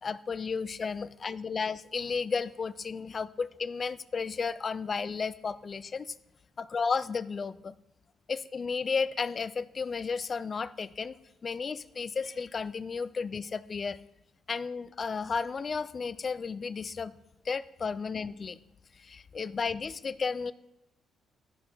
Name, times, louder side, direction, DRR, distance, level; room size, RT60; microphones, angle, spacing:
voice 1, 0.0-6.2 6.6-7.8 8.3-11.2 11.4-14.0 14.5-17.2 17.4-18.6 19.0-20.5, left 5 dB, 40° left, 15 dB, 0.3 m, -33 dB
12.5 x 4.3 x 2.8 m, 0.88 s
cardioid pair, 90°, 0 cm